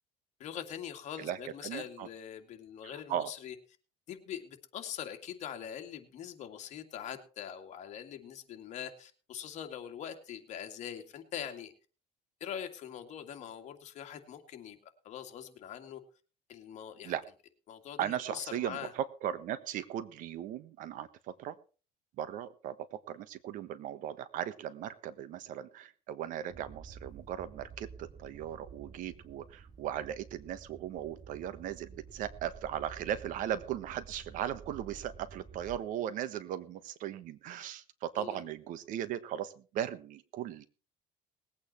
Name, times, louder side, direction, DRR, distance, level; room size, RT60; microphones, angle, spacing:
voice 1, 0.4-3.5 4.1-11.7 12.4-14.8 15.0-16.0 16.5-17.1 17.7-18.9 38.2-38.4, left 9 dB, 50° left, 5 dB, 2.5 m, -43 dB
voice 2, 1.2-2.1 2.8-3.3 17.0-17.3 18.0-21.6 22.2-40.7, right 10 dB, 65° right, 14 dB, 1.3 m, -38 dB
sound 1, 26.5-35.8, right 5 dB, 25° right, 1.6 m, -51 dB
20.0 x 8.7 x 4.4 m, 0.36 s
cardioid pair, 130°, 15 cm